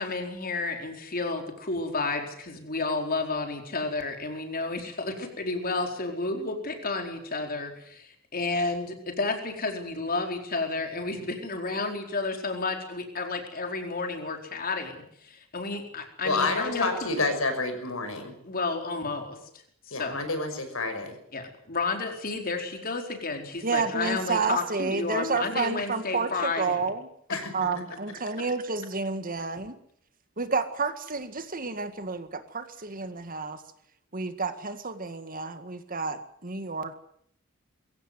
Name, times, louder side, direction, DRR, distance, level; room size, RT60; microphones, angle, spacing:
voice 1, 0.0-17.3 18.4-19.4 19.9-20.2 21.3-26.8, left 3 dB, 45° left, 4 dB, 4.5 m, -31 dB
voice 2, 16.2-18.3 19.9-21.2 27.3-27.5, left 3 dB, 80° left, 6 dB, 6.0 m, -29 dB
voice 3, 23.6-27.1 27.5-29.8 30.4-33.6 34.1-36.9, right 4 dB, 40° right, 10 dB, 1.9 m, -30 dB
23.0 x 16.0 x 9.6 m, 0.68 s
head